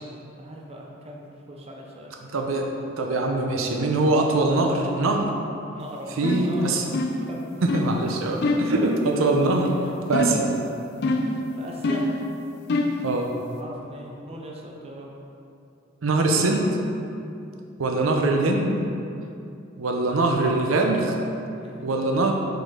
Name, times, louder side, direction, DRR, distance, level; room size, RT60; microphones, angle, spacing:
voice 1, 0.4-2.1 5.7-6.8 7.2-7.5 8.7-8.9 11.6-12.1 13.5-15.1 21.6-21.7, equal, 30° right, -1 dB, 0.6 m, -39 dB
voice 2, 2.3-2.7 3.0-5.3 6.2-6.8 7.6-9.7 10.1-10.5 13.0-13.3 16.0-16.7 17.8-18.8 19.8-21.1 21.8-22.3, right 2 dB, 80° right, 1 dB, 0.6 m, -22 dB
sound 1, 6.2-6.5 6.9-7.3 7.7-7.9 8.4-8.7 10.1-10.5 11.0-11.4 11.8-12.2 12.7-13.0, left 2 dB, 55° left, 0.5 m, -24 dB
5.1 x 3.9 x 4.8 m, 2.6 s
head